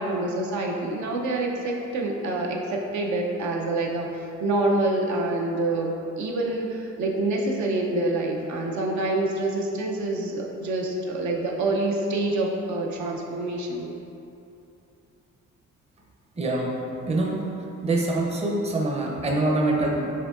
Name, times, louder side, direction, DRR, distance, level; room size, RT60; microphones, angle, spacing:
voice 1, 0.0-13.9, right 2 dB, 70° right, -1 dB, 0.6 m, -26 dB
voice 2, 16.4-16.8 17.1-17.4 17.8-20.1, right 2 dB, 20° right, -1 dB, 0.6 m, -24 dB
6.6 x 2.7 x 2.4 m, 2.8 s
cardioid pair, 90°, 30 cm